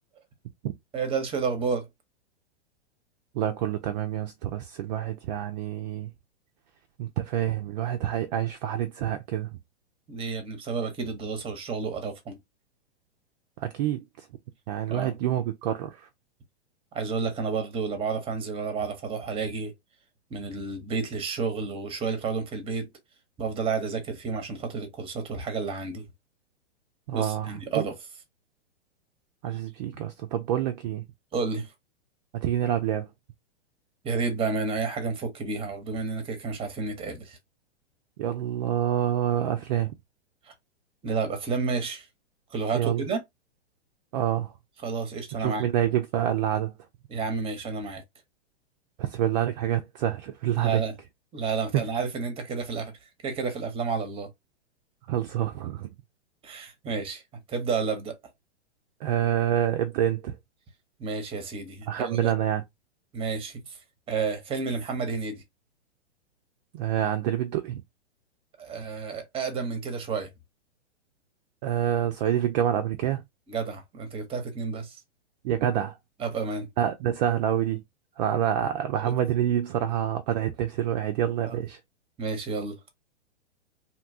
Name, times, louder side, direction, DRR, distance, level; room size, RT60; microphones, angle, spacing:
voice 1, 0.9-1.9 10.1-12.4 14.9-15.1 16.9-19.7 20.3-22.9 23.4-26.1 27.1-27.9 31.3-31.7 34.0-37.4 40.5-40.6 41.0-42.1 42.5-43.2 44.8-45.6 47.1-48.0 50.6-50.9 51.3-52.9 53.2-54.3 56.4-57.2 57.5-58.1 61.0-62.3 63.1-63.8 64.1-65.4 68.6-70.3 73.5-75.0 76.2-76.7 79.0-79.1 81.4-81.6 82.2-82.7, right 4 dB, 15° right, 0.8 m, -30 dB
voice 2, 3.3-6.1 7.0-9.6 13.6-14.3 14.7-16.1 27.1-27.8 29.4-31.1 32.3-33.1 38.2-39.9 42.7-43.0 44.1-44.5 45.4-46.7 49.0-50.8 51.7-51.8 55.1-55.9 59.0-60.4 61.9-62.6 66.7-67.8 71.6-73.2 75.4-76.0 76.8-77.8 78.2-81.8, right 11 dB, 40° right, 0.4 m, -27 dB
2.8 x 2.2 x 2.6 m
hypercardioid pair, 115°, 34 cm